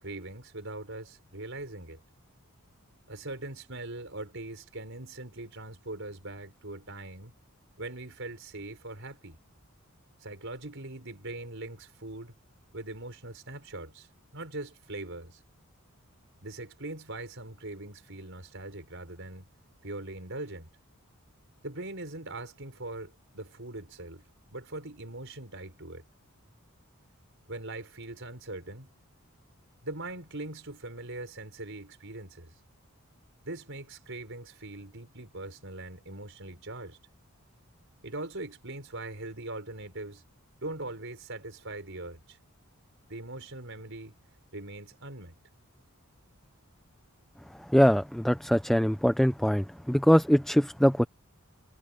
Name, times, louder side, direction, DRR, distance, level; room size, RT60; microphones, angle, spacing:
voice 1, 0.0-2.0 3.1-7.4 7.8-9.4 10.2-12.3 12.7-15.4 16.4-19.5 19.8-20.7 21.6-24.3 24.5-26.0 27.5-28.9 29.8-32.6 33.4-37.0 38.0-40.2 40.6-42.4 43.1-44.2 44.5-45.3, right 2 dB, 55° right, 5.8 m, -41 dB
voice 2, 47.7-51.1, equal, ahead, 0.5 m, -23 dB
head